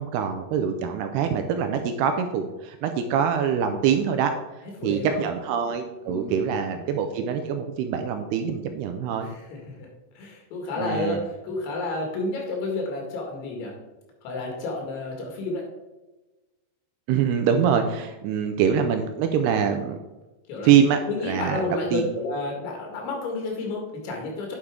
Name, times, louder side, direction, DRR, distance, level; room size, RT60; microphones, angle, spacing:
voice 1, 0.0-4.3 4.8-9.3 10.8-11.2 17.1-20.0 20.6-22.1, right 7 dB, 80° right, 6 dB, 2.4 m, -24 dB
voice 2, 4.8-5.2 6.0-6.5 9.2-9.9 10.2-13.7 14.2-15.6 18.3-18.6 20.5-20.7 21.1-24.6, left 2 dB, 90° left, 0 dB, 4.3 m, -31 dB
9.4 x 6.7 x 3.6 m, 1.1 s
omnidirectional pair, 5.1 m